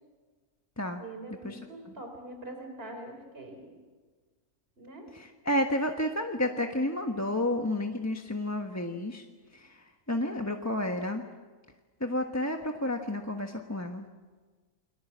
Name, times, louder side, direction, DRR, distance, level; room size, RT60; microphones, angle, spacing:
voice 1, 1.0-3.7 4.8-5.1, right 1 dB, 40° right, 4 dB, 4.4 m, -43 dB
voice 2, 5.1-9.2 9.5-11.2 12.0-14.1, left 1 dB, 10° left, 3 dB, 1.2 m, -31 dB
30.0 x 22.5 x 7.5 m, 1.4 s
omnidirectional pair, 1.6 m